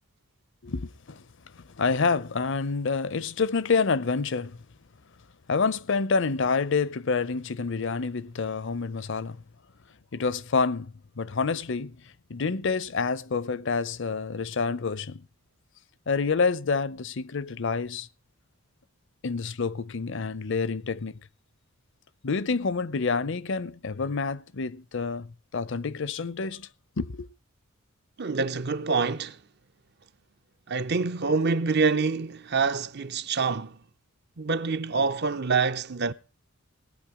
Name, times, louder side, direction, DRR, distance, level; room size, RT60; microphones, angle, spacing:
voice 1, 0.6-1.2 1.6-4.6 5.5-9.4 10.1-12.0 12.3-15.3 16.1-18.1 19.2-21.2 22.2-26.7 27.0-27.3, left 4 dB, 55° left, 0.6 m, -28 dB
voice 2, 28.2-29.4 30.7-33.8 34.4-36.1, right 4 dB, 50° right, 0.7 m, -26 dB
18.0 x 9.2 x 4.9 m
head